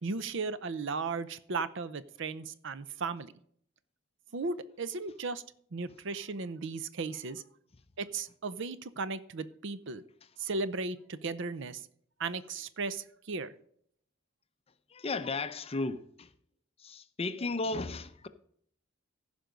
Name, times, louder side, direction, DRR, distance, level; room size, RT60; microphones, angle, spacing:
voice 1, 0.0-3.3 4.3-5.4 5.7-7.4 8.0-10.0 10.4-11.8 12.2-13.5, right 4 dB, 65° right, 0.6 m, -36 dB
voice 2, 14.9-16.3 16.8-18.3, left 3 dB, 30° left, 0.6 m, -34 dB
15.0 x 5.2 x 5.1 m
head